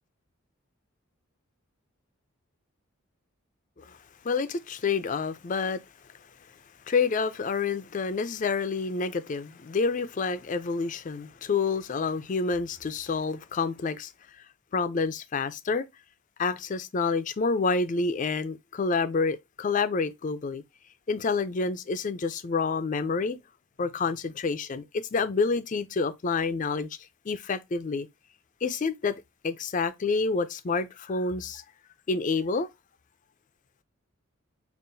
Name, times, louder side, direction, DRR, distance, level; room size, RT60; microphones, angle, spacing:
voice 1, 4.2-5.8 6.9-14.1 14.7-15.9 16.4-20.6 21.1-23.4 23.8-26.9 27.3-28.1 28.6-29.2 29.4-31.6 32.1-32.7, left 4 dB, 40° left, 0.4 m, -28 dB
5.4 x 2.4 x 2.6 m
head